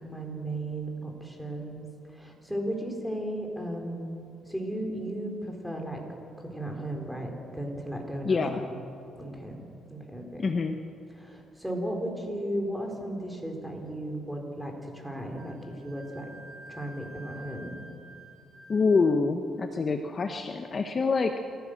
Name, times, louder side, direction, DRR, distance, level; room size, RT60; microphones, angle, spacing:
voice 1, 0.0-6.0 6.4-8.7 9.2-9.6 9.9-10.4 11.1-16.3 16.7-17.8, right 1 dB, ahead, 1 dB, 4.1 m, -35 dB
voice 2, 8.2-8.6 10.4-10.8 18.7-21.4, left 4 dB, 35° left, 6 dB, 1.0 m, -26 dB
Wind instrument woodwind instrument, 15.3-19.1, right 2 dB, 55° right, 7.0 m, -49 dB
27.5 x 15.0 x 6.5 m, 2.5 s
cardioid pair, 100°, 0 cm